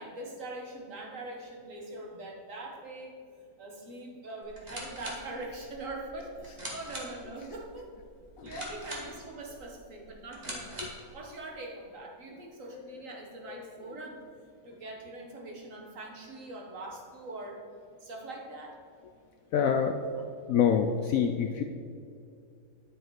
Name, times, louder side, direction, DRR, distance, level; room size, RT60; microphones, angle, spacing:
voice 1, 0.0-3.2 3.6-7.9 8.4-14.2 14.6-17.6 18.0-18.8, right 2 dB, 50° right, 0 dB, 1.5 m, -42 dB
sound 1, 4.4-11.1, right 1 dB, 25° right, 1.6 m, -44 dB
voice 2, 12.7-13.0 13.5-13.7 19.5-20.0 20.5-21.6, left 7 dB, 70° left, 5 dB, 0.8 m, -27 dB
10.0 x 6.5 x 4.7 m, 2.4 s
omnidirectional pair, 1.8 m